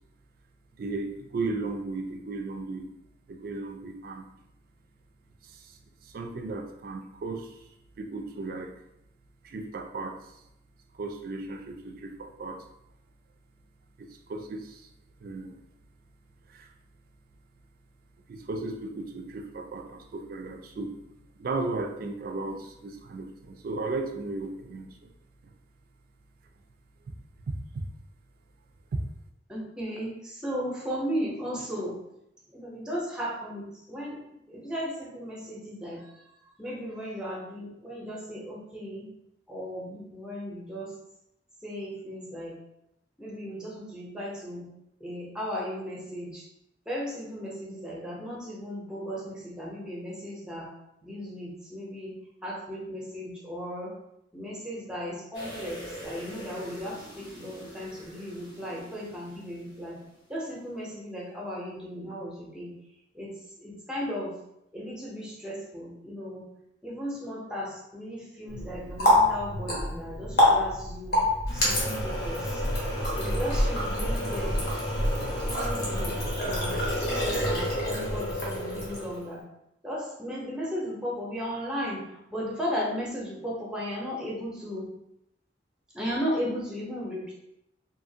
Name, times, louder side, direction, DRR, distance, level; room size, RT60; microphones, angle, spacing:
voice 1, 0.7-2.9 3.3-4.3 5.4-7.6 8.0-8.7 9.4-10.2 10.9-12.6 14.0-14.9 15.2-15.6 16.5-16.7 18.3-21.0 21.4-25.1 25.4-25.5 27.5-27.9 28.9-29.0, right 3 dB, 50° right, 5 dB, 0.3 m, -35 dB
voice 2, 29.5-31.9 32.5-34.2 34.5-36.0 36.6-39.1 39.5-40.9 41.6-42.5 43.2-44.6 45.0-46.4 46.9-50.7 51.0-52.1 52.4-53.9 54.3-60.0 60.3-62.7 63.1-63.3 63.6-64.3 64.7-66.4 66.8-71.2 71.5-72.6 73.0-74.6 75.5-79.4 79.8-82.0 82.3-84.9 85.9-87.3, equal, 5° right, -5 dB, 0.7 m, -36 dB
sound 1, 55.3-60.2 60.5-60.6, equal, 80° left, 1.4 m, -45 dB
Water tap faucet, 68.5-79.3, left 1 dB, 60° left, 0.9 m, -27 dB
2.7 x 2.4 x 2.7 m, 0.82 s
head